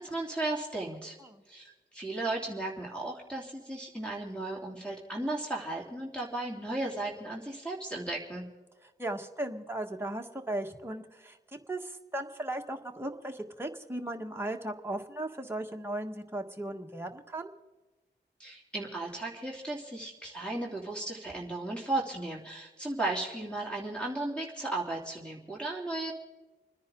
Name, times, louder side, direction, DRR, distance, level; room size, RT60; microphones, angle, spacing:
voice 1, 0.0-1.2 1.5-8.4 18.4-26.1, right 2 dB, 5° left, -2 dB, 2.9 m, -35 dB
voice 2, 9.0-11.4 11.7-17.5, right 1 dB, 10° right, 2 dB, 1.5 m, -37 dB
29.5 x 10.5 x 3.8 m, 1.2 s
cardioid pair, 45°, 19 cm